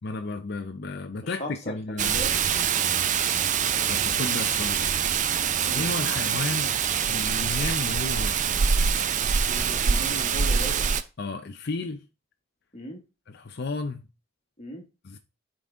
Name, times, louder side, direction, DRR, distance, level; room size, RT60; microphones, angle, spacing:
voice 1, 0.0-2.2 3.9-5.1 5.7-6.7 7.1-8.7 11.2-12.0 13.3-14.1 15.0-15.2, left 3 dB, 50° left, 0.6 m, -33 dB
voice 2, 1.2-2.4 5.7-5.9 9.5-10.9 12.7-13.0 14.6-14.8, left 1 dB, 35° left, 1.8 m, -37 dB
Rain, 2.0-11.0, right 7 dB, 35° right, 0.4 m, -25 dB
9.3 x 4.0 x 3.6 m
head